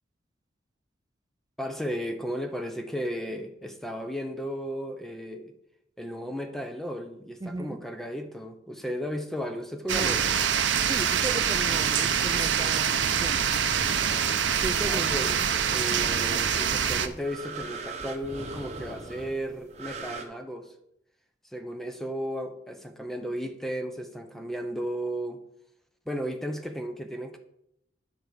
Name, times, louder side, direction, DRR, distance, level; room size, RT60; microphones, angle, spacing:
voice 1, 1.6-5.5 6.0-10.2 14.8-15.4 15.7-20.7 21.5-25.4 26.1-27.4, equal, ahead, 5 dB, 0.7 m, -34 dB
voice 2, 7.4-7.8 9.9-10.3 10.8-13.5 14.6-15.2, right 2 dB, 20° right, 12 dB, 0.4 m, -36 dB
sound 1, 9.9-17.1, right 7 dB, 90° right, 0.7 m, -25 dB
sound 2, 13.2-20.2, right 3 dB, 40° right, 1.0 m, -41 dB
9.4 x 4.6 x 6.7 m, 0.79 s
head